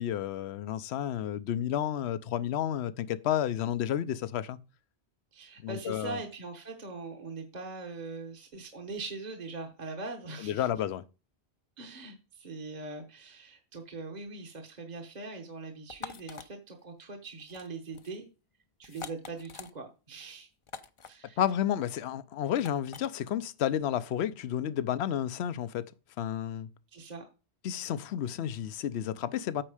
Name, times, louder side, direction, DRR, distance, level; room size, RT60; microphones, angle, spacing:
voice 1, 0.0-4.6 5.6-6.2 10.4-11.0 21.4-25.9 26.2-26.7 27.6-29.6, left 10 dB, 75° left, 0.9 m, -31 dB
voice 2, 5.3-10.7 11.8-18.3 18.8-20.5 21.1-21.4 26.9-27.3, right 3 dB, 40° right, 1.1 m, -41 dB
sound 1, 15.9-16.5 17.4-17.7 17.9-18.2 18.8-19.7 20.7-21.1 22.6-23.1, left 6 dB, 40° left, 0.5 m, -44 dB
8.9 x 5.4 x 4.9 m
omnidirectional pair, 1.1 m